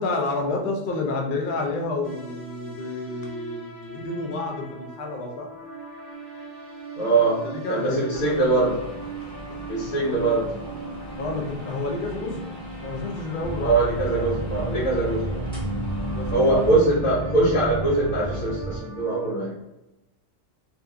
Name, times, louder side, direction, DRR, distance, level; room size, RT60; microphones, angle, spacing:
voice 1, 0.0-5.5 7.4-8.5 11.2-12.4 12.8-13.7 16.0-16.5, left 3 dB, 65° left, 1 dB, 0.5 m, -29 dB
sound 1, 2.0-19.3, right 3 dB, 25° right, 0.8 m, -39 dB
voice 2, 7.0-8.8 9.7-10.5 13.6-15.6 16.3-19.5, right 2 dB, 90° left, -7 dB, 1.2 m, -22 dB
sound 2, 8.1-16.8, equal, 5° left, 0.9 m, -38 dB
sound 3, 13.4-18.8, right 2 dB, 80° right, 0.9 m, -32 dB
2.7 x 2.4 x 2.2 m, 0.95 s
omnidirectional pair, 1.4 m